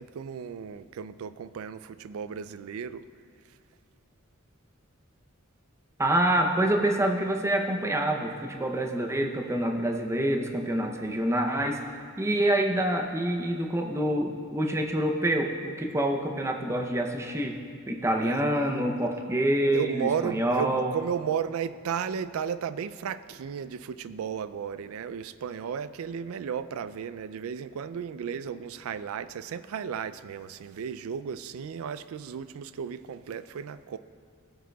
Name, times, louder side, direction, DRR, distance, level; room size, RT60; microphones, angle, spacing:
voice 1, 0.0-3.0 18.1-18.8 19.7-34.0, right 7 dB, 75° right, 14 dB, 0.3 m, -34 dB
voice 2, 6.0-11.8 12.2-17.6 17.9-20.9, right 1 dB, 15° right, 3 dB, 0.6 m, -26 dB
16.5 x 7.6 x 2.3 m, 2.1 s
head